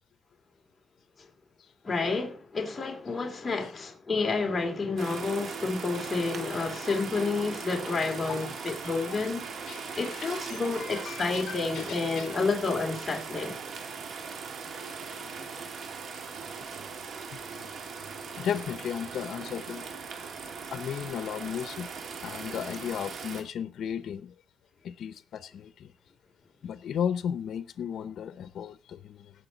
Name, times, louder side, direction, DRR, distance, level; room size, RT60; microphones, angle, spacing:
voice 1, 1.8-9.5 10.0-13.6, left 3 dB, 25° left, 2.6 m, -30 dB
sound 1, 5.0-23.4, right 5 dB, 75° right, 2.6 m, -39 dB
voice 2, 8.3-9.2 9.7-12.4 15.2-15.3 17.2-17.3 17.6-17.7 18.4-19.8 20.7-21.9 22.2-24.3 24.8-25.9 26.6-29.3, left 8 dB, 85° left, 0.7 m, -35 dB
17.0 x 6.6 x 4.0 m
cardioid pair, 115°, 0 cm